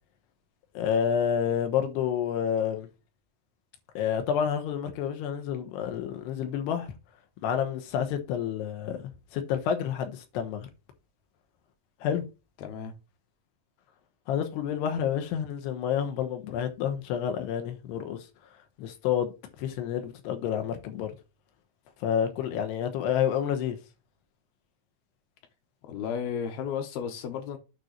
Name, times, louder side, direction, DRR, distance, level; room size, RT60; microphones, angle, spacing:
voice 1, 0.7-2.9 3.9-6.9 7.4-9.0 9.3-10.7 12.0-12.2 14.3-18.3 18.8-21.1 22.0-23.8, left 8 dB, 90° left, 3.3 m, -29 dB
voice 2, 12.6-12.9 25.9-27.6, left 7 dB, 75° left, 3.0 m, -33 dB
9.0 x 3.0 x 6.5 m
omnidirectional pair, 4.6 m